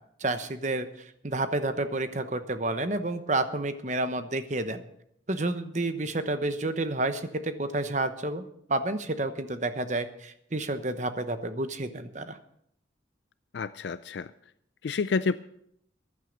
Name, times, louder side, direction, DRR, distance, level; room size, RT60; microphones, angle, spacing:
voice 1, 0.2-4.8 5.3-8.4 8.7-12.4, right 2 dB, 40° right, 10 dB, 1.0 m, -30 dB
voice 2, 13.5-14.3 14.8-15.3, left 4 dB, 65° left, 13 dB, 0.4 m, -29 dB
15.0 x 11.0 x 5.3 m, 0.73 s
head